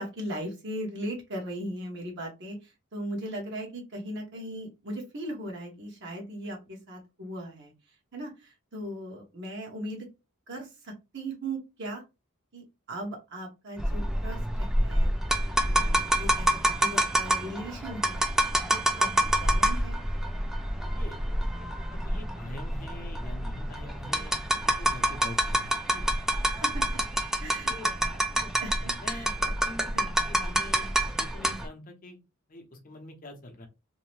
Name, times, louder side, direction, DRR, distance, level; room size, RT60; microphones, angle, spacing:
voice 1, 0.0-7.7 8.1-10.1 10.5-12.0 12.5-15.1 15.6-16.5 16.8-18.3 18.6-20.0 26.4-27.0 27.4-30.1, right 1 dB, 55° right, 0 dB, 1.0 m, -38 dB
sound 1, 13.8-31.7, right 1 dB, ahead, 0.3 m, -27 dB
voice 2, 20.8-21.2 21.9-26.1 27.7-27.9 28.3-28.5 29.0-29.3 29.6-29.9 30.3-32.2 32.5-33.7, left 1 dB, 40° left, 4 dB, 0.7 m, -44 dB
2.7 x 2.1 x 3.0 m, 0.26 s
head